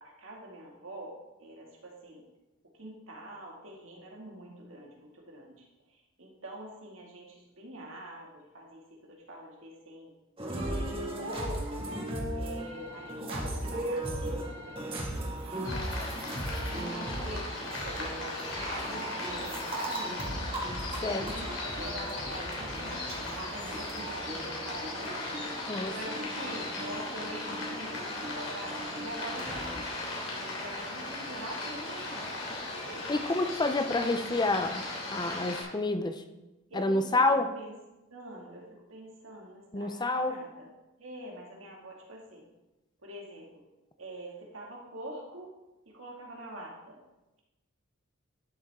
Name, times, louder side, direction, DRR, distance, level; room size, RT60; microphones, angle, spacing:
voice 1, 0.0-2.2 2.7-8.8 9.1-10.1 10.7-11.9 12.3-16.1 16.6-20.3 21.0-25.6 25.9-29.8 30.1-33.1 36.7-37.7 38.1-40.7 41.0-42.5 43.0-43.5 44.0-45.5 45.9-47.0, right 1 dB, 80° right, -1 dB, 2.3 m, -45 dB
sound 1, 10.4-29.8, right 1 dB, 30° right, 1.9 m, -38 dB
sound 2, 15.6-35.6, left 2 dB, 75° left, 3.1 m, -37 dB
voice 2, 33.1-34.9 35.1-36.2 36.7-37.5 39.7-40.4, left 2 dB, 20° left, 8 dB, 0.6 m, -28 dB
12.0 x 7.2 x 3.7 m, 1.0 s
head